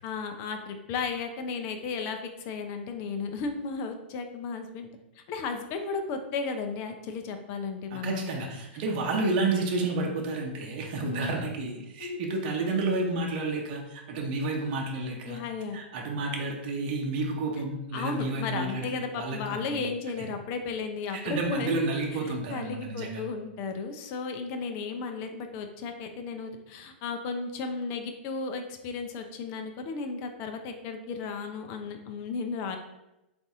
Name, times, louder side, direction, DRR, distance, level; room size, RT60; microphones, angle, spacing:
voice 1, 0.0-4.9 5.2-8.3 11.0-11.3 12.0-12.2 15.3-15.8 17.9-21.9 22.2-32.8, left 4 dB, 40° left, 6 dB, 0.6 m, -34 dB
voice 2, 7.9-15.4 15.7-18.9 19.1-19.8 20.2-20.3 21.1-23.2, right 3 dB, 50° right, 0 dB, 0.8 m, -30 dB
4.0 x 2.6 x 3.6 m, 0.94 s
hypercardioid pair, 110°, 6 cm